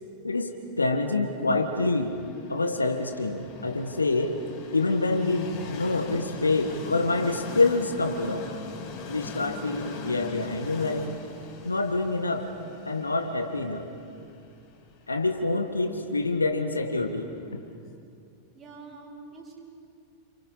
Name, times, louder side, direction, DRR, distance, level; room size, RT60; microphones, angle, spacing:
voice 1, 0.2-2.2 2.5-4.4 4.7-8.5 9.1-11.1 11.6-12.5 12.9-13.9 15.1-17.3, left 3 dB, 80° left, 6 dB, 1.9 m, -26 dB
Train, 1.7-17.5, left 3 dB, 35° left, 4.5 m, -42 dB
voice 2, 18.5-19.6, right 3 dB, 25° right, -2 dB, 7.2 m, -46 dB
29.5 x 29.0 x 5.7 m, 2.4 s
figure-of-eight pair, 90°, 0 cm